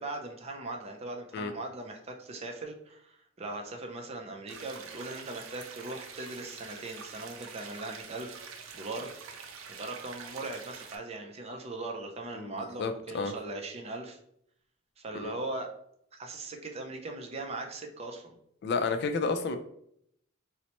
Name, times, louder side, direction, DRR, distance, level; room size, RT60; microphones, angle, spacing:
voice 1, 0.0-8.4 8.7-9.1 9.7-14.2 15.0-15.7 16.1-18.4, right 2 dB, 30° right, 3 dB, 0.4 m, -39 dB
sound 1, 4.5-11.0, right 6 dB, 90° right, 0.5 m, -46 dB
voice 2, 12.3-13.3 15.2-15.3 18.6-19.6, left 4 dB, 55° left, 7 dB, 0.3 m, -31 dB
4.2 x 2.1 x 2.9 m, 0.72 s
head